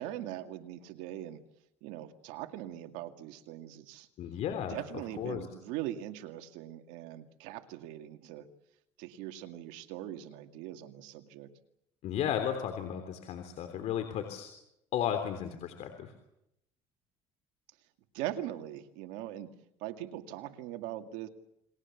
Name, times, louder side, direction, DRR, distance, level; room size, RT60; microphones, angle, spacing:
voice 1, 0.0-1.4 1.8-4.1 4.7-8.5 9.0-11.5 18.1-19.5 19.8-21.3, right 13 dB, 85° right, 6 dB, 2.3 m, -41 dB
voice 2, 4.2-4.8 5.2-5.5 12.0-14.5 14.9-16.1, left 9 dB, 65° left, 6 dB, 3.5 m, -34 dB
29.5 x 21.5 x 7.3 m, 0.82 s
cardioid pair, 105°, 12 cm